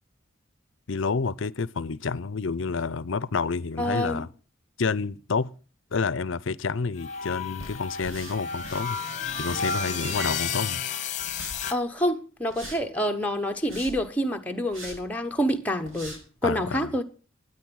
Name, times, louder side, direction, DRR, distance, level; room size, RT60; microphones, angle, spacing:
voice 1, 0.9-4.3 4.8-5.5 5.9-9.0 9.4-10.9 16.4-16.9, left 4 dB, 70° left, 0.6 m, -29 dB
voice 2, 3.8-4.2 11.7-17.0, equal, 5° left, 1.1 m, -27 dB
sound 1, 7.0-11.7, left 6 dB, 35° left, 1.0 m, -32 dB
sound 2, 7.6-8.9 9.2-10.5 11.2-11.6 12.5-12.8 13.5-14.1 14.7-15.0 15.5-15.6 15.8-16.2, right 1 dB, 85° right, 5.3 m, -42 dB
12.5 x 9.9 x 6.3 m
head